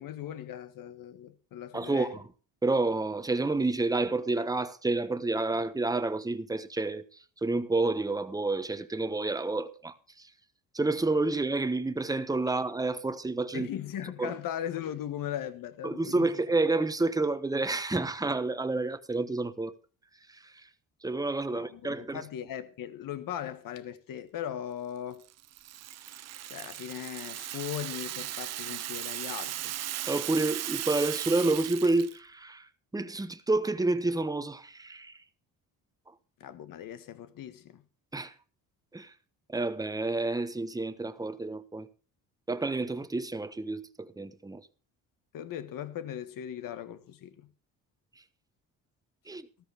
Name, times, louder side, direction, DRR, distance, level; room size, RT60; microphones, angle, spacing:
voice 1, 0.0-2.1 13.5-16.3 21.5-25.2 26.5-29.7 36.4-37.8 45.3-47.5, left 10 dB, 60° left, 1.6 m, -38 dB
voice 2, 1.7-2.2 2.6-7.0 7.4-10.3 10.7-13.7 14.2-14.3 15.8-19.7 20.3-20.7 21.0-22.2 30.0-35.2 38.1-38.3 38.9-39.1 39.5-41.9 42.5-44.7 49.3-49.5, right 2 dB, 10° right, 1.2 m, -29 dB
Rattle (instrument), 25.2-32.2, right 13 dB, 45° right, 0.5 m, -37 dB
13.5 x 13.5 x 3.5 m
supercardioid pair, 85°, 37 cm